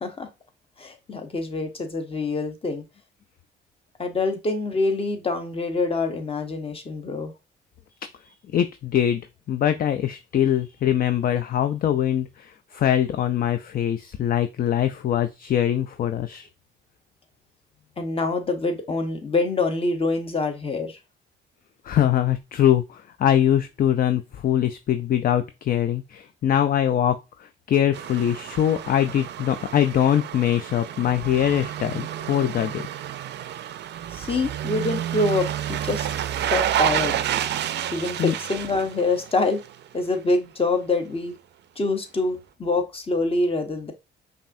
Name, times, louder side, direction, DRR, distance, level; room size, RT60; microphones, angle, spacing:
voice 1, 0.8-2.8 4.0-7.3 18.0-21.0 34.1-36.1 36.5-37.2 37.9-39.6 39.9-41.3 41.8-43.9, left 3 dB, 30° left, 6 dB, 1.0 m, -25 dB
voice 2, 8.5-9.2 9.5-16.5 21.8-32.9 38.2-38.3, left 10 dB, 45° left, 10 dB, 0.4 m, -23 dB
sound 1, 27.9-39.8 40.1-40.2, right 11 dB, 60° right, 0.4 m, -30 dB
5.2 x 2.7 x 2.6 m, 0.26 s
cardioid pair, 90°, 20 cm